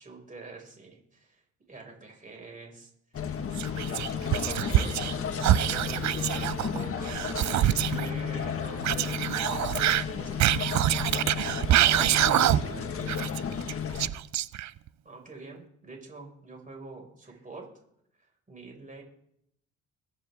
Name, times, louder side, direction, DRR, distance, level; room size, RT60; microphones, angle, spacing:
voice 1, 0.0-1.4 1.7-2.9 3.7-7.4 7.9-10.7 15.0-17.7 18.2-19.0, right 3 dB, 25° right, 1 dB, 5.5 m, -46 dB
sound 1, 3.1-14.1, left 7 dB, 50° left, 1.6 m, -33 dB
Whispering, 3.5-5.1 5.4-8.1 8.8-12.8 13.1-14.9, right 13 dB, 65° right, 0.6 m, -25 dB
voice 2, 11.5-13.6 17.2-17.4, right 4 dB, 45° right, 0 dB, 2.5 m, -47 dB
22.0 x 9.8 x 3.6 m, 0.71 s
cardioid pair, 90°, 30 cm